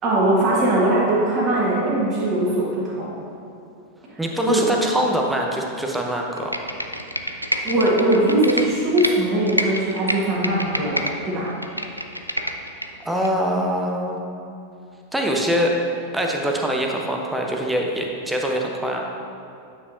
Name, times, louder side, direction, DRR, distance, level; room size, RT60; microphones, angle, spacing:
voice 1, 0.0-3.1 4.5-4.6 7.6-11.5, right 1 dB, 30° right, -6 dB, 1.6 m, -20 dB
voice 2, 4.2-6.6 13.0-14.2 15.1-15.8 16.1-19.1, equal, 5° right, 0 dB, 0.8 m, -23 dB
Computer keyboard, 6.4-9.1 9.5-11.1 11.5-12.9 13.2-13.3, equal, 90° right, 0.4 m, -26 dB
9.4 x 5.8 x 2.7 m, 2.6 s
figure-of-eight pair, 90°, 0 cm